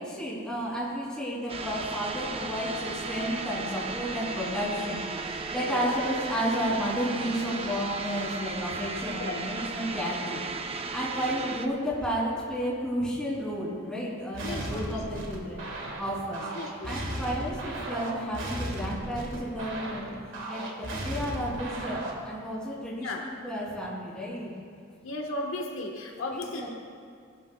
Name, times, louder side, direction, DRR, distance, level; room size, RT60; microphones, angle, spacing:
voice 1, 0.0-15.7 16.0-16.5 16.8-20.2 20.5-24.5 26.3-26.7, equal, 5° left, -7 dB, 3.1 m, -32 dB
sound 1, 1.5-11.7, right 4 dB, 30° right, 0.6 m, -35 dB
sound 2, 14.3-22.3, right 1 dB, 65° right, 1.9 m, -36 dB
voice 2, 14.4-15.0 16.5-17.0 23.0-23.2 25.0-26.7, left 2 dB, 70° left, 0 dB, 1.3 m, -35 dB
19.5 x 12.0 x 2.3 m, 2.2 s
head